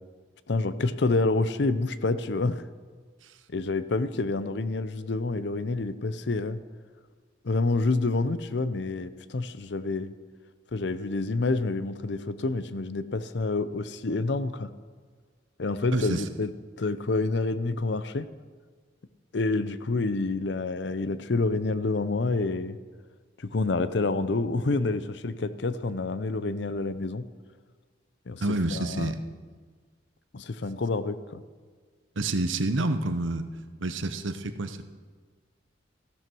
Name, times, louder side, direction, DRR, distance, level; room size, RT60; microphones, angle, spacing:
voice 1, 0.5-2.6 3.5-6.6 7.4-10.1 10.7-14.7 15.6-16.5 16.8-18.3 19.3-22.8 23.4-27.2 28.3-28.4 28.7-29.1 30.3-31.4, left 3 dB, 65° left, 14 dB, 0.6 m, -28 dB
voice 2, 15.9-16.3 28.4-29.2 32.2-33.5 33.8-34.8, right 2 dB, 85° right, 9 dB, 0.9 m, -28 dB
15.0 x 12.0 x 4.6 m, 1.5 s
head